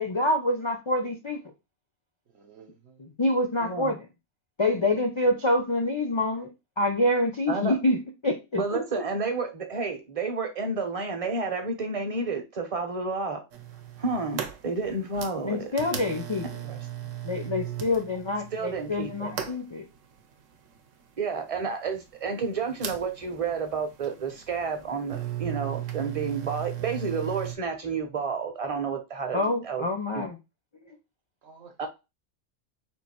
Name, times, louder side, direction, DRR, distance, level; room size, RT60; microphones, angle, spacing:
voice 1, 0.0-1.4 3.0-4.1 4.6-6.5 6.8-8.8 15.4-16.5 17.2-19.9 29.3-30.4 30.9-31.0, left 1 dB, 45° left, 0.3 m, -26 dB
voice 2, 2.3-3.0 31.4-31.9, right 5 dB, 65° right, 1.0 m, -52 dB
voice 3, 3.6-3.9 7.5-7.8 8.6-13.4 14.0-15.7 16.6-16.8 18.5-19.3 21.2-29.8 30.1-30.3 31.8-31.9, right 4 dB, 35° right, 0.7 m, -30 dB
sound 1, 13.5-27.6, right 10 dB, 90° right, 1.0 m, -37 dB
3.7 x 2.5 x 4.2 m
omnidirectional pair, 1.3 m